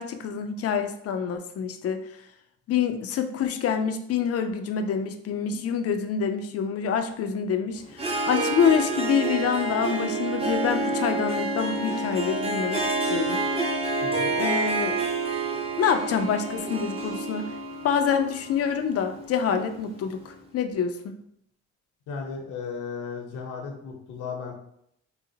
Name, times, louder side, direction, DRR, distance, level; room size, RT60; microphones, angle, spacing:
voice 1, 0.0-2.0 2.7-13.4 14.4-15.0 15.8-17.5 17.8-21.2, left 7 dB, 50° left, 7 dB, 0.4 m, -26 dB
Harp, 7.9-19.8, right 2 dB, 20° right, 0.6 m, -28 dB
voice 2, 14.0-14.3 22.1-24.5, left 5 dB, 80° left, 1 dB, 0.8 m, -35 dB
3.8 x 2.0 x 2.7 m, 0.72 s
cardioid pair, 90°, 30 cm